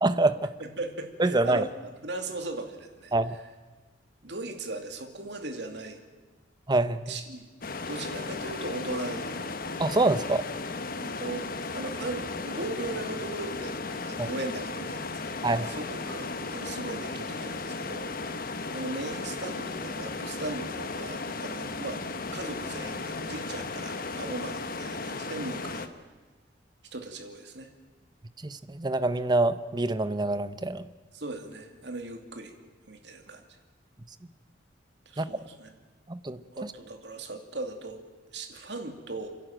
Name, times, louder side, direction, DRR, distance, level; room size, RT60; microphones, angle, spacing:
voice 1, 0.0-0.5 1.2-1.7 3.1-3.4 6.7-7.0 9.8-10.4 14.2-14.3 15.4-15.7 28.4-30.8 35.2-35.3 36.1-36.4, right 2 dB, 25° right, 13 dB, 0.8 m, -25 dB
voice 2, 0.6-3.1 4.2-6.0 7.1-7.4 7.9-9.5 11.0-11.4 11.7-15.4 15.7-18.1 18.7-22.0 22.3-25.9 26.9-27.7 31.1-32.6 32.9-33.5 35.1-35.7 36.5-38.0 38.3-39.3, right 2 dB, 65° right, 5 dB, 2.6 m, -38 dB
sound 1, 7.6-25.9, left 3 dB, 50° left, 1.2 m, -35 dB
29.5 x 11.0 x 9.0 m, 1.4 s
head